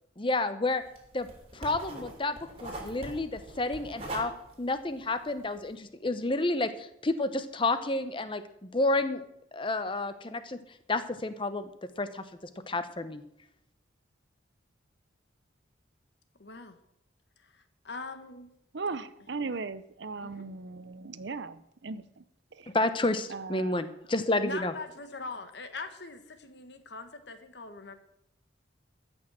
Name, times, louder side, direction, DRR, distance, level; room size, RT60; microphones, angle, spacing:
voice 1, 0.2-0.8 1.1-1.3 1.5-4.3 4.6-9.2 9.5-10.6 10.9-11.7 12.0-12.2 12.7-13.2 22.7-24.7, left 2 dB, 25° left, 11 dB, 0.8 m, -30 dB
sound 1, 0.8-5.7, right 1 dB, 30° right, 2.9 m, -42 dB
voice 2, 16.4-16.8 17.4-18.5 19.4-19.6 20.2-20.5 24.4-28.0, left 3 dB, 60° left, 8 dB, 1.3 m, -42 dB
voice 3, 18.7-22.2 22.6-22.7 23.3-23.8, right 4 dB, 65° right, 14 dB, 0.7 m, -38 dB
14.0 x 6.2 x 7.4 m, 0.79 s
head